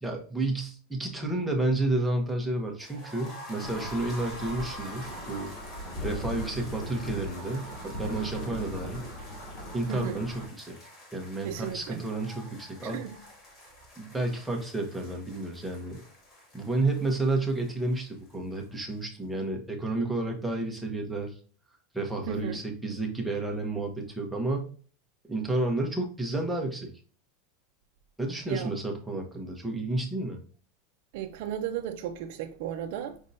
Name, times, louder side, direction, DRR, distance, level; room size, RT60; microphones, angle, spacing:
voice 1, 0.0-5.5 6.0-9.0 9.7-10.8 11.1-13.0 14.0-16.0 16.5-21.3 21.9-24.7 25.2-26.9 28.2-30.4, right 2 dB, 5° right, 0.8 m, -31 dB
sound 1, 2.8-18.6 18.9-19.0 19.3-19.4, equal, 25° left, 1.8 m, -47 dB
sound 2, 3.6-10.5, equal, 40° left, 2.3 m, -39 dB
voice 2, 9.9-10.2 11.4-12.0 12.8-13.2 22.3-22.6 28.5-28.7 31.1-33.2, right 10 dB, 55° right, 0.5 m, -35 dB
5.2 x 3.6 x 2.6 m
supercardioid pair, 175°, 0 cm